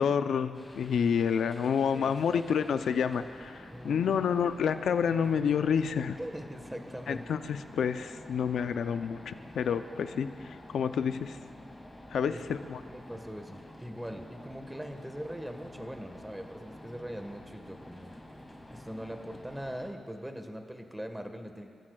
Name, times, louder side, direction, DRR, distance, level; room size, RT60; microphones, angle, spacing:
voice 1, 0.0-6.2 7.1-11.4 12.1-12.8, left 7 dB, 75° left, 9 dB, 0.6 m, -29 dB
sound 1, 0.5-19.9, left 1 dB, 15° left, 2.5 m, -49 dB
voice 2, 1.9-2.4 3.7-4.2 6.2-7.4 12.3-18.1 18.7-21.7, equal, 5° right, 5 dB, 1.6 m, -41 dB
29.5 x 15.0 x 2.4 m, 2.3 s
cardioid pair, 70°, 0 cm